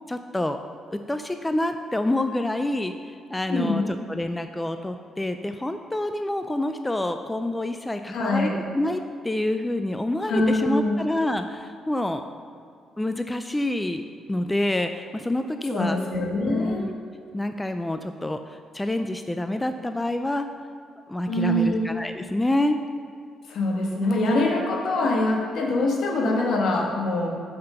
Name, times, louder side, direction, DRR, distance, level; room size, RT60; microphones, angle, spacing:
voice 1, 0.1-0.6 0.9-12.2 13.0-14.0 14.3-16.0 16.4-16.9 17.3-20.5 21.1-22.8, left 1 dB, 10° left, 7 dB, 0.3 m, -27 dB
voice 2, 3.5-3.9 8.1-8.6 10.3-11.0 15.7-16.8 21.3-21.9 23.5-27.3, left 1 dB, 70° left, 0 dB, 1.5 m, -24 dB
5.8 x 5.6 x 6.6 m, 2.3 s
cardioid pair, 90°, 0 cm